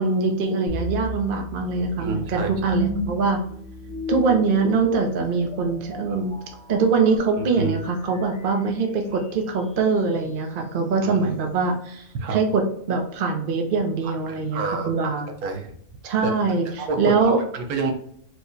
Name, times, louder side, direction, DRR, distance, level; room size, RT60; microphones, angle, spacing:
voice 1, 0.0-3.4 4.1-6.4 6.7-12.0 12.3-12.6 12.9-15.3 16.0-17.4, right 4 dB, 50° right, 3 dB, 0.7 m, -23 dB
sound 1, 0.7-9.8, equal, 10° left, 0.4 m, -35 dB
voice 2, 2.0-2.8 7.4-7.7 11.0-11.3 12.2-12.4 14.0-15.8 16.2-16.3 16.8-17.9, right 4 dB, 90° right, 4 dB, 1.2 m, -29 dB
4.5 x 2.1 x 2.6 m, 0.67 s
omnidirectional pair, 1.5 m